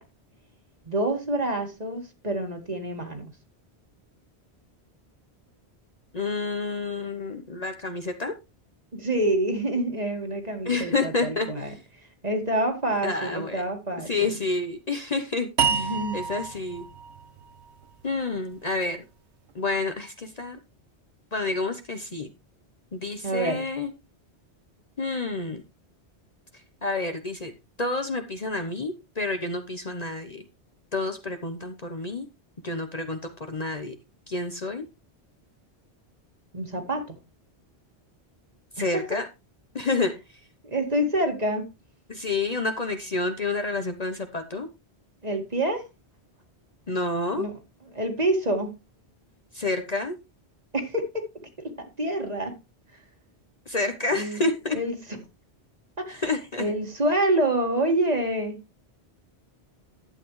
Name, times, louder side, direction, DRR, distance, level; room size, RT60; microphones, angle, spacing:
voice 1, 0.9-3.3 8.9-14.4 15.7-16.2 23.2-23.6 36.5-37.2 38.8-39.2 40.6-41.7 45.2-45.9 47.3-47.5 47.9-48.7 50.7-51.3 51.6-52.6 54.1-54.5 54.7-55.2 56.0-56.2 56.6-58.6, right 1 dB, 35° right, 2.0 m, -27 dB
voice 2, 6.1-8.3 10.6-11.5 13.0-13.6 14.1-16.9 18.0-19.0 19.5-20.6 21.3-22.3 22.9-23.9 25.0-25.6 26.8-27.5 27.8-30.4 30.9-32.2 32.6-33.2 33.5-33.9 34.3-34.8 38.8-39.3 39.7-40.1 42.1-44.7 46.9-47.5 49.5-50.2 53.7-54.8 56.2-56.7, left 3 dB, 40° left, 1.0 m, -29 dB
sound 1, 15.6-18.8, right 6 dB, 90° right, 1.3 m, -30 dB
11.5 x 8.3 x 3.2 m
omnidirectional pair, 1.1 m